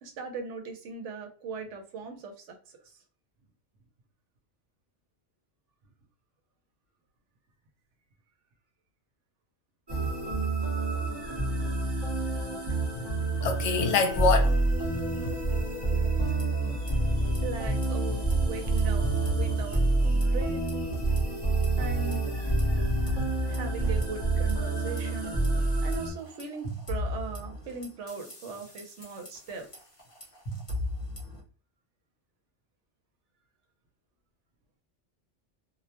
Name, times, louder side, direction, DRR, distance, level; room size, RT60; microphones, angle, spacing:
voice 1, 0.0-2.8 15.9-16.6 17.4-19.0 19.3-19.9 20.1-20.6 21.8-22.2 23.5-25.4 25.8-29.7, right 4 dB, 80° right, 1.0 m, -39 dB
sound 1, 9.9-26.1, right 2 dB, 25° right, 0.6 m, -27 dB
voice 2, 12.9-14.5 14.9-15.3, left 5 dB, 75° left, 0.9 m, -27 dB
sound 2, 16.2-16.9 17.2-17.4 17.8-20.4 20.7-21.2 21.6-25.0 25.4-31.4, left 1 dB, 30° left, 0.9 m, -38 dB
2.4 x 2.1 x 2.8 m
omnidirectional pair, 1.2 m